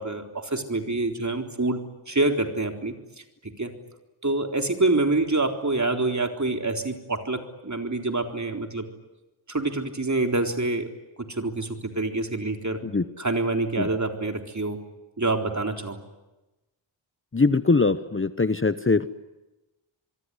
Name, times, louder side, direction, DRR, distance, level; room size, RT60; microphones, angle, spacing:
voice 1, 0.0-1.8 2.1-2.9 3.6-3.7 4.2-8.9 9.5-10.9 11.4-12.8 13.2-14.8 15.2-16.0, right 2 dB, 35° right, 5 dB, 3.9 m, -26 dB
voice 2, 17.3-19.1, left 3 dB, 25° left, 12 dB, 1.0 m, -22 dB
26.5 x 23.0 x 9.9 m, 1.0 s
wide cardioid pair, 80°, 48 cm